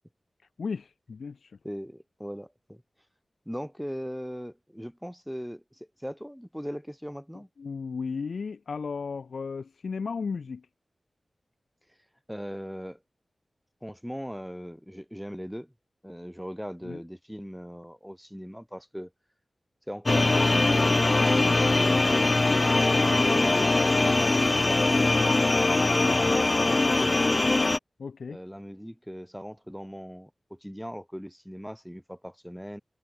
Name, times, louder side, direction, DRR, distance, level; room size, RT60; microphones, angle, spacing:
voice 1, 0.6-1.5 7.6-10.6 16.8-17.0 28.0-28.4, left 5 dB, 90° left, 3.5 m, -34 dB
voice 2, 1.6-2.8 3.5-7.5 12.3-13.0 13.8-15.7 16.0-19.1 19.9-22.4 23.1-25.4 25.8-27.6 28.3-32.8, equal, ahead, 3.6 m, -39 dB
sound 1, 20.1-27.8, left 2 dB, 40° left, 0.4 m, -22 dB
wide cardioid pair, 80°, 0 cm